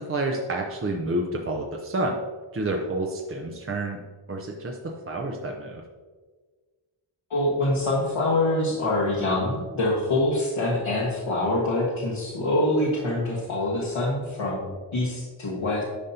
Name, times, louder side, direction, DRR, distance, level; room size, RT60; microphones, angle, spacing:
voice 1, 0.0-2.2 2.5-4.0 4.3-5.8, right 2 dB, 30° right, 1 dB, 0.5 m, -29 dB
voice 2, 7.3-15.8, left 1 dB, 75° left, -7 dB, 1.5 m, -25 dB
10.0 x 5.3 x 2.8 m, 1.4 s
wide cardioid pair, 130°, 48 cm